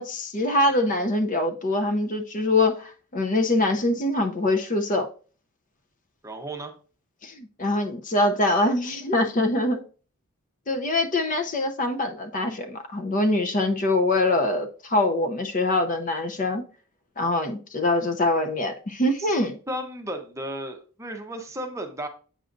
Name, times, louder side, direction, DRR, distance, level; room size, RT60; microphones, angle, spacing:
voice 1, 0.0-5.1 7.2-9.8 10.7-16.6 17.2-19.5, left 2 dB, 35° left, 0.6 m, -24 dB
voice 2, 6.2-6.7 19.2-19.3 19.7-22.1, right 1 dB, 15° right, 0.7 m, -34 dB
7.9 x 6.3 x 2.6 m
head